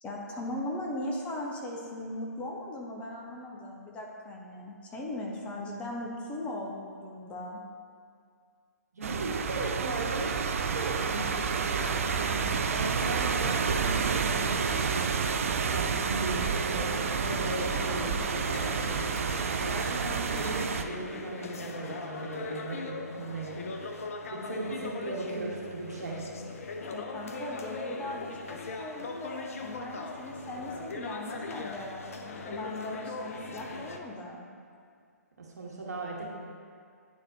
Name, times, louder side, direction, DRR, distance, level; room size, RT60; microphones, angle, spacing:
voice 1, 0.0-7.6 26.9-34.5, left 1 dB, 15° left, -2 dB, 0.6 m, -38 dB
voice 2, 8.9-19.0 19.6-23.7 24.3-26.3 35.4-36.2, right 2 dB, 70° right, -2 dB, 1.4 m, -37 dB
sound 1, 9.0-20.8, right 5 dB, 50° right, 0.4 m, -29 dB
sound 2, 16.7-34.0, left 3 dB, 55° left, 0.6 m, -40 dB
10.0 x 4.0 x 2.7 m, 2.2 s
figure-of-eight pair, 130°, 9 cm